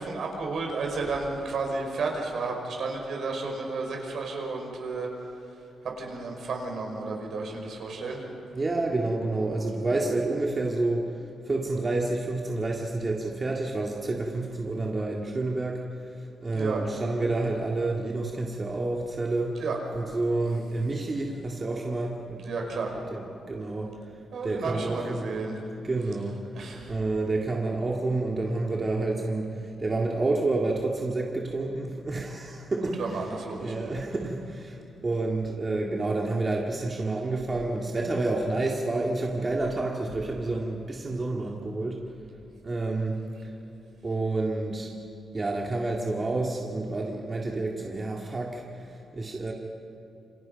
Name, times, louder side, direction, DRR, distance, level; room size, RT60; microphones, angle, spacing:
voice 1, 0.0-5.1 5.8-8.2 16.5-16.8 19.6-19.8 22.4-22.9 24.3-25.6 26.5-26.9 33.0-33.9, right 3 dB, 65° right, 1 dB, 5.4 m, -32 dB
voice 2, 8.5-15.8 16.2-19.6 19.9-22.4 22.7-23.9 24.4-25.3 25.8-26.4 26.9-42.0 42.6-43.2 43.4-43.5 44.0-44.9 45.3-49.5, right 2 dB, 30° right, -1 dB, 2.1 m, -29 dB
28.0 x 26.0 x 5.3 m, 2.7 s
cardioid pair, 115°, 0 cm